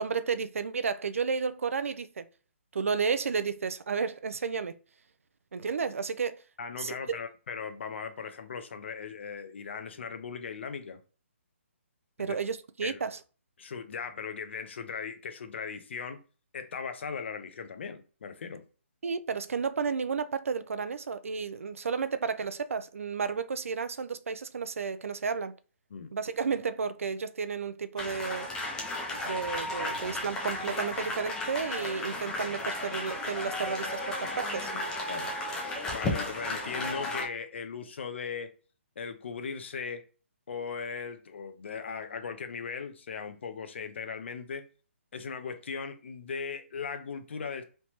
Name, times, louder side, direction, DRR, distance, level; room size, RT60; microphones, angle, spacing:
voice 1, 0.0-2.3 2.7-4.8 5.5-6.4 6.8-7.2 12.2-13.2 19.0-25.5 26.1-28.5 29.1-34.7, right 5 dB, 90° right, 0.3 m, -32 dB
voice 2, 6.6-11.0 12.2-12.4 12.8-13.0 13.6-16.2 16.5-18.6 25.9-26.1 35.1-35.3 35.9-38.5 39.0-40.1 40.5-44.7 45.1-47.6, left 5 dB, 60° left, 0.5 m, -38 dB
sound 1, 28.0-37.3, left 2 dB, 10° left, 0.4 m, -34 dB
3.2 x 2.0 x 2.8 m
hypercardioid pair, 160°, 7 cm